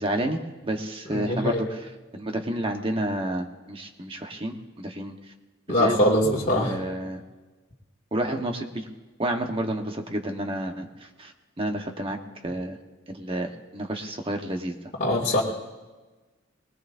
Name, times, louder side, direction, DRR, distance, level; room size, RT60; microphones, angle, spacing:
voice 1, 0.0-1.8 2.1-5.1 5.7-6.0 6.5-7.2 8.1-8.8 9.2-10.9 11.2-12.2 12.4-12.8 13.1-14.8, right 1 dB, 30° right, 3 dB, 1.4 m, -30 dB
voice 2, 1.1-1.6 5.7-6.7 15.0-15.4, left 1 dB, 40° left, -4 dB, 2.5 m, -22 dB
21.0 x 20.0 x 2.7 m, 1.2 s
head